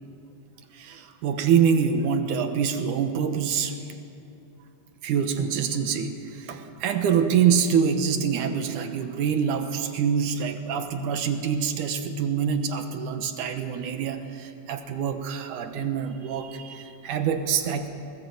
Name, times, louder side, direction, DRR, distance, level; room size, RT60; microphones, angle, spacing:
voice 1, 0.7-3.8 5.0-17.9, right 7 dB, 70° right, 7 dB, 2.5 m, -25 dB
21.5 x 19.5 x 7.8 m, 2.7 s
omnidirectional pair, 4.0 m